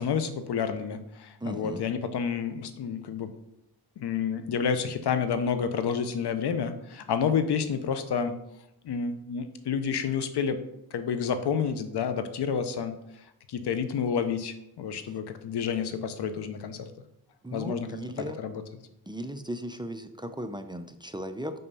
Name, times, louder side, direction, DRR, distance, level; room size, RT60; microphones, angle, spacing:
voice 1, 0.0-3.3 4.0-8.4 8.8-10.6 10.9-13.0 13.5-16.9 17.5-17.9 18.4-18.6, left 7 dB, 75° left, 9 dB, 0.8 m, -29 dB
voice 2, 1.4-1.8 17.4-18.4 19.1-21.5, right 1 dB, 10° right, 8 dB, 0.5 m, -36 dB
5.6 x 5.4 x 5.4 m, 0.83 s
cardioid pair, 80°, 40 cm